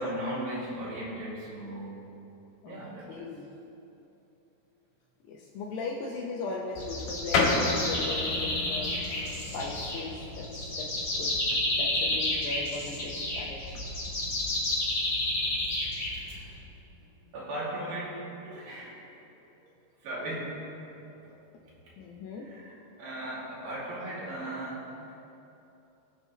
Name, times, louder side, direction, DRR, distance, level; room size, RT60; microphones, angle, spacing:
voice 1, 0.0-2.0 2.7-3.3 16.2-16.5 17.3-18.2 18.5-19.0 20.0-20.5 22.5-24.8, right 1 dB, 55° right, -7 dB, 3.9 m, -37 dB
voice 2, 3.1-3.5 5.3-9.0 9.3-11.3 11.8-13.8 21.1-21.4 22.0-22.5, left 3 dB, 80° left, -1 dB, 2.4 m, -38 dB
sound 1, 6.8-16.6, left 1 dB, 30° left, 2.5 m, -31 dB
sound 2, 7.3-17.5, left 3 dB, 65° left, 3.4 m, -35 dB
21.5 x 7.7 x 3.2 m, 2.8 s
omnidirectional pair, 5.8 m